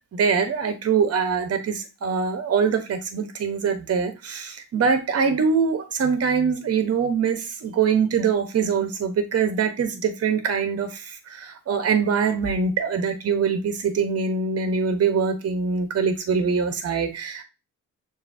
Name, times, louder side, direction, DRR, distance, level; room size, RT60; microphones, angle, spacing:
voice 1, 0.1-17.4, right 6 dB, 50° right, 7 dB, 1.2 m, -23 dB
6.6 x 2.8 x 2.8 m, 0.27 s
cardioid pair, 90°, 30 cm